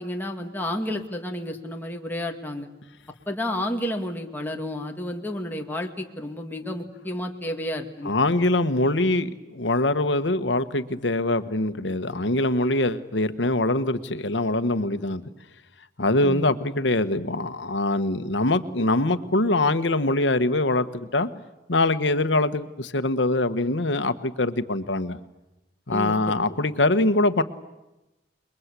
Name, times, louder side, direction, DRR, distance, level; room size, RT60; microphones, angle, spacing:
voice 1, 0.0-2.7 3.3-8.2 16.2-16.5 25.9-26.1, left 1 dB, 10° left, 2 dB, 2.0 m, -31 dB
voice 2, 8.0-15.2 16.0-21.3 21.7-25.2 25.9-27.4, left 2 dB, 75° left, 10 dB, 1.3 m, -23 dB
28.5 x 22.0 x 8.3 m, 0.99 s
head